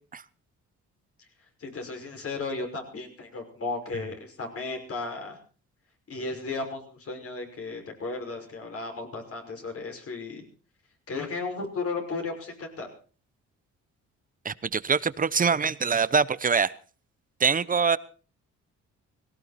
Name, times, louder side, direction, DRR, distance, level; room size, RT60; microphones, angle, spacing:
voice 1, 1.6-5.4 6.1-10.4 11.1-12.9, left 3 dB, 50° left, 3 dB, 5.8 m, -34 dB
voice 2, 14.4-16.7 17.4-18.0, right 5 dB, 30° right, 17 dB, 0.8 m, -24 dB
18.5 x 17.5 x 4.3 m, 0.40 s
cardioid pair, 90°, 30 cm